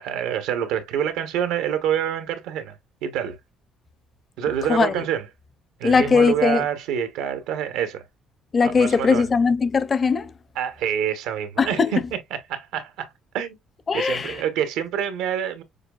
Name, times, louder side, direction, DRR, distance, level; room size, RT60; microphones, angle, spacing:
voice 1, 0.0-2.8 3.0-3.4 4.4-5.3 5.8-8.0 8.6-9.3 10.6-13.1 13.3-13.6 13.9-15.6, right 9 dB, 90° right, 0.9 m, -26 dB
voice 2, 5.8-6.6 8.5-10.3 11.6-11.9 13.9-14.3, left 5 dB, 30° left, 0.5 m, -19 dB
6.6 x 2.3 x 2.4 m
cardioid pair, 115°, 0 cm